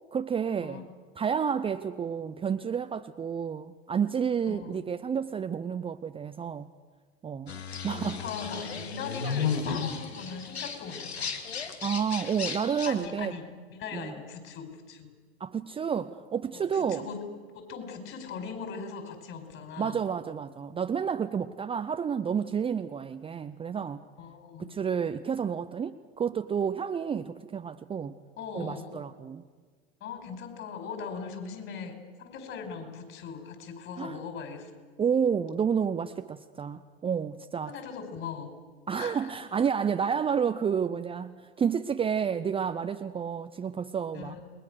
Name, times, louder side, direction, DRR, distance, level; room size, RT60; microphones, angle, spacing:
voice 1, 0.1-6.7 7.2-7.6 7.8-8.2 9.2-9.5 11.8-13.3 13.9-14.1 15.4-17.1 19.8-24.0 24.6-28.2 28.5-29.4 34.0-34.2 35.0-37.7 38.9-44.3, right 7 dB, 15° right, 9 dB, 0.7 m, -30 dB
voice 2, 4.5-4.8 7.9-11.4 12.9-15.2 16.5-17.2 17.5-20.0 24.2-24.7 28.4-29.0 30.0-34.7 37.7-38.6 39.0-39.3 44.1-44.4, left 6 dB, 40° left, 6 dB, 5.5 m, -40 dB
sound 1, 7.5-13.1, left 6 dB, 80° left, 2.6 m, -34 dB
29.0 x 21.0 x 6.6 m, 1.5 s
hypercardioid pair, 95°, 31 cm